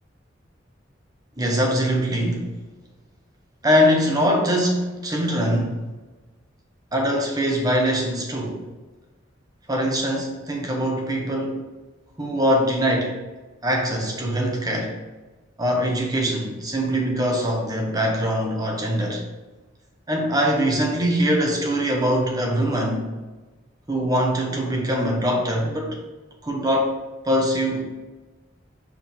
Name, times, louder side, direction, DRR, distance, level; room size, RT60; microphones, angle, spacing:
voice 1, 1.4-2.5 3.6-5.7 6.9-8.6 9.7-11.6 12.2-13.1 13.6-14.9 15.6-19.2 20.1-23.0 23.9-26.0 26.4-26.9 27.2-27.8, equal, 20° right, 0 dB, 1.1 m, -22 dB
5.4 x 4.8 x 3.8 m, 1.2 s
head